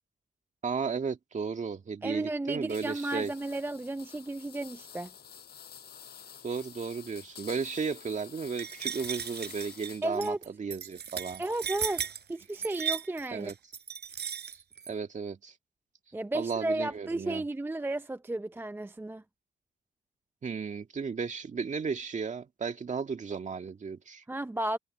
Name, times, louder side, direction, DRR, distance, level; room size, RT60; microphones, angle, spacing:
voice 1, 0.6-3.3 6.4-11.4 13.3-13.6 14.9-15.5 16.3-17.4 20.4-24.2, right 5 dB, 40° right, 2.0 m, -34 dB
voice 2, 2.0-5.1 10.0-10.4 11.4-13.5 16.1-19.2 24.3-24.8, right 2 dB, 10° right, 0.6 m, -33 dB
sound 1, 2.7-10.2, left 8 dB, 55° left, 5.9 m, -49 dB
sound 2, 8.6-14.9, right 8 dB, 55° right, 5.8 m, -36 dB
cardioid pair, 90°, 20 cm